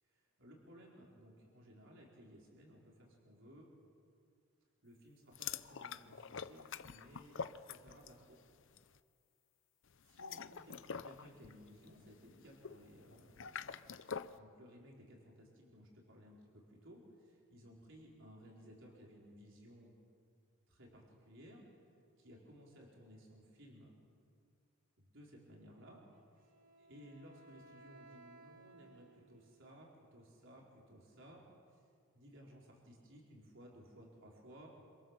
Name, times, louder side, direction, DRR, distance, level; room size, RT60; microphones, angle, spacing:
voice 1, 0.4-3.7 4.8-7.4 7.7-8.4 10.0-13.8 14.3-19.9 20.7-21.6 22.2-23.9 25.0-26.0 26.4-26.5 26.8-31.4 31.7-31.9 32.1-34.7, equal, 60° right, -2 dB, 4.8 m, -58 dB
sound 1, 5.3-8.3 8.5-8.8 10.0-14.4, left 6 dB, 60° left, 0.8 m, -46 dB
Wind instrument woodwind instrument, 26.1-29.7, right 3 dB, 40° right, 2.7 m, -61 dB
28.0 x 26.5 x 7.5 m, 2.3 s
head